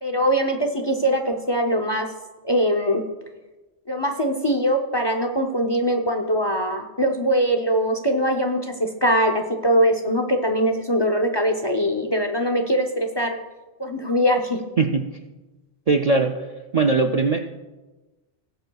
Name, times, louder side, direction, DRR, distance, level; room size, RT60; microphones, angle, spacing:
voice 1, 0.0-2.1 2.4-3.0 3.9-13.4 13.8-14.6, equal, 30° left, 4 dB, 0.6 m, -22 dB
voice 2, 14.8-15.1 15.9-16.5 16.7-17.4, right 4 dB, 50° right, 4 dB, 0.5 m, -20 dB
19.0 x 8.0 x 2.3 m, 1.1 s
omnidirectional pair, 1.2 m